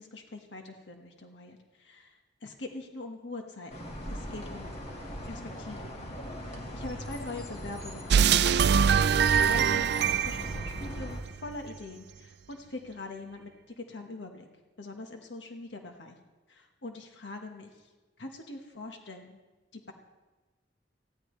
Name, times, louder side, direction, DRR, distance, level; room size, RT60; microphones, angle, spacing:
voice 1, 0.0-2.2 2.4-4.8 5.2-6.0 6.7-8.7 9.2-13.5 13.8-14.4 14.8-16.2 16.5-17.7 18.2-19.4 19.7-19.9, left 2 dB, 75° left, 3 dB, 1.5 m, -43 dB
sound 1, 3.7-11.2, equal, 35° left, 2.0 m, -39 dB
sound 2, 8.1-11.5, right 7 dB, 65° right, 0.4 m, -24 dB
19.5 x 15.5 x 3.3 m, 1.2 s
head